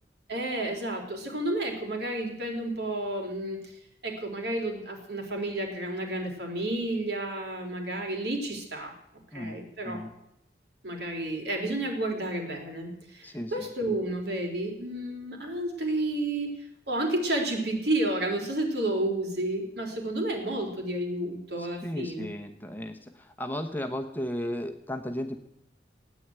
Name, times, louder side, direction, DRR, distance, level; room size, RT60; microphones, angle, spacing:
voice 1, 0.3-3.6 4.0-8.9 9.3-10.0 10.8-16.5 16.9-22.3, right 1 dB, 65° right, 2 dB, 3.9 m, -31 dB
voice 2, 9.3-10.1 13.2-13.7 21.6-25.4, equal, 10° left, 4 dB, 1.0 m, -35 dB
16.5 x 9.4 x 8.9 m, 0.83 s
head